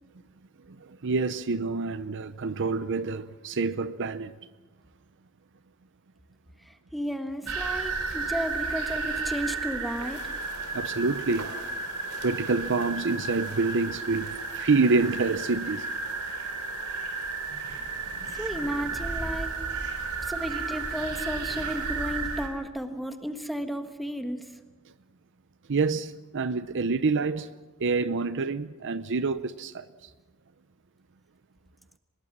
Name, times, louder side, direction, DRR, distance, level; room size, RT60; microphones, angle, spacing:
voice 1, 0.8-4.3 10.7-11.5 12.2-15.9 25.7-27.5 27.8-29.9, right 4 dB, 55° right, 0.7 m, -27 dB
voice 2, 6.6-10.2 18.4-19.6 20.2-24.6, equal, ahead, 1.4 m, -33 dB
sound 1, 7.5-22.5, right 4 dB, 75° right, 3.4 m, -33 dB
24.0 x 21.0 x 6.1 m
head